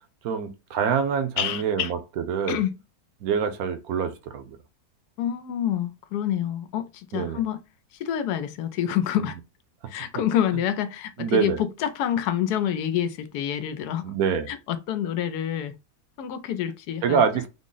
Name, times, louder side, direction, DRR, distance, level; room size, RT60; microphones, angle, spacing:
voice 1, 0.2-2.0 2.3-2.6 3.2-4.6 7.1-7.4 9.2-9.3 11.2-11.6 14.0-14.5 17.0-17.5, right 7 dB, 70° right, 1.1 m, -25 dB
voice 2, 1.4-1.9 2.5-2.8 5.2-7.6 8.0-9.4 9.9-14.0 14.5-15.7 16.2-17.2, left 10 dB, 85° left, 1.1 m, -27 dB
3.7 x 2.0 x 3.8 m
omnidirectional pair, 1.6 m